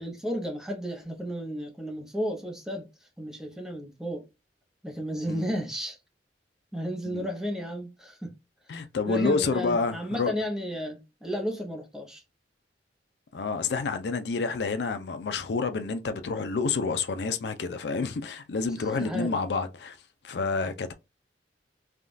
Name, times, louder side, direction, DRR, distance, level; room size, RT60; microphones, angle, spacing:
voice 1, 0.0-4.3 4.8-6.0 6.7-8.3 9.1-12.2 18.8-19.4, equal, 5° right, 0.6 m, -33 dB
voice 2, 8.7-10.3 13.3-20.0 20.2-20.9, left 4 dB, 70° left, 0.5 m, -29 dB
3.5 x 2.3 x 2.5 m
head